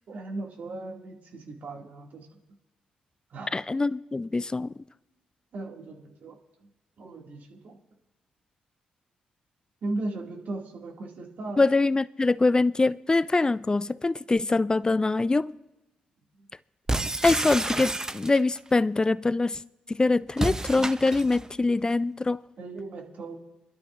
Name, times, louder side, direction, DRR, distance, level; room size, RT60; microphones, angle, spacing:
voice 1, 0.1-2.3 3.3-3.6 5.5-6.7 7.0-7.8 9.8-11.6 16.4-16.5 22.6-23.4, right 2 dB, 60° right, 2.3 m, -37 dB
voice 2, 3.5-4.7 11.6-15.6 17.2-19.6 19.9-22.5, left 3 dB, 25° left, 0.5 m, -24 dB
sound 1, 16.9-18.6 20.3-21.5, right 2 dB, 20° right, 0.8 m, -29 dB
24.0 x 12.0 x 2.6 m
hypercardioid pair, 45°, 3 cm